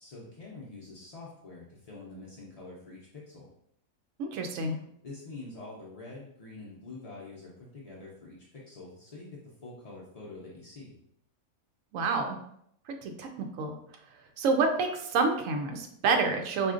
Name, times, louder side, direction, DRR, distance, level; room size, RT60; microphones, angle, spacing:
voice 1, 0.0-3.5 5.0-11.0, left 3 dB, 55° left, -6 dB, 0.4 m, -46 dB
voice 2, 4.2-4.8 11.9-12.4 12.9-13.7 14.4-16.7, right 4 dB, 70° right, 4 dB, 0.9 m, -28 dB
4.3 x 2.4 x 2.4 m, 0.72 s
omnidirectional pair, 1.5 m